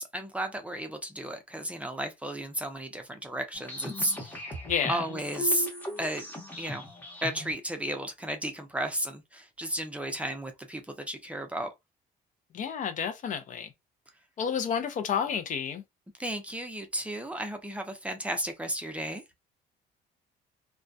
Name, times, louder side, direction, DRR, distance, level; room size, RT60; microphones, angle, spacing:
voice 1, 0.0-4.4 4.9-5.7 6.0-6.3 6.6-6.8 7.2-11.7 16.2-19.2, right 1 dB, 10° right, 0.5 m, -33 dB
sound 1, 3.5-7.5, equal, 10° left, 0.9 m, -38 dB
voice 2, 4.6-5.0 12.5-13.7 14.4-15.8, left 7 dB, 50° left, 0.5 m, -30 dB
2.2 x 2.2 x 2.6 m
cardioid pair, 110°, 17 cm